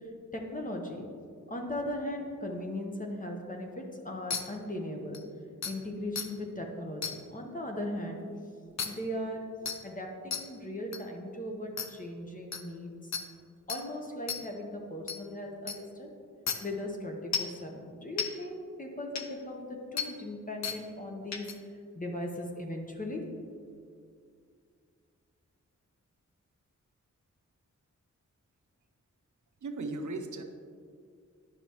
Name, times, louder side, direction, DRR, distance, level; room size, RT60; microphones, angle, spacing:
voice 1, 0.3-1.1 1.5-5.2 5.6-8.2 8.7-13.1 13.7-16.1 16.6-21.5 21.9-23.5, left 1 dB, 25° left, 1 dB, 0.9 m, -38 dB
sound 1, 4.3-4.4 5.1-5.2 5.6-5.7 6.2-6.3 7.0-7.1 8.8-8.9 9.7-9.8 10.3-10.4 10.9-11.0 11.8-11.9 12.5-12.6 13.1-13.2 13.7-13.8 14.3-14.4 15.1-15.2 15.7-15.8 16.5-16.6 17.3-17.5 18.2-18.3 19.2-19.3 20.0-20.1 20.6-20.8 21.3-21.5, left 6 dB, 65° left, 0.6 m, -32 dB
voice 2, 29.6-30.4, right 2 dB, 75° right, 5 dB, 0.7 m, -36 dB
10.0 x 5.9 x 3.0 m, 2.2 s
wide cardioid pair, 125°, 30 cm